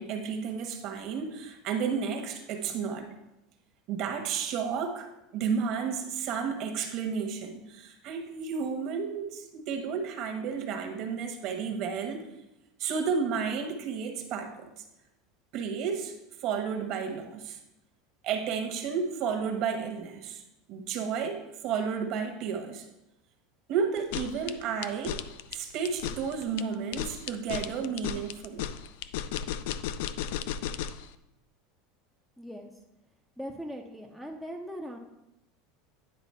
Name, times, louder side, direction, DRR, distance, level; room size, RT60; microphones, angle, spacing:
voice 1, 0.0-3.1 3.9-12.3 12.8-14.8 15.5-17.6 18.2-20.4 20.7-22.9 23.7-25.2 25.5-28.7, right 6 dB, 45° right, 5 dB, 1.1 m, -32 dB
sound 1, 24.0-31.1, left 10 dB, 70° left, 0.4 m, -35 dB
voice 2, 32.4-32.7 33.4-35.0, equal, ahead, 3 dB, 0.5 m, -40 dB
9.9 x 4.0 x 5.5 m, 0.91 s
supercardioid pair, 160°, 0 cm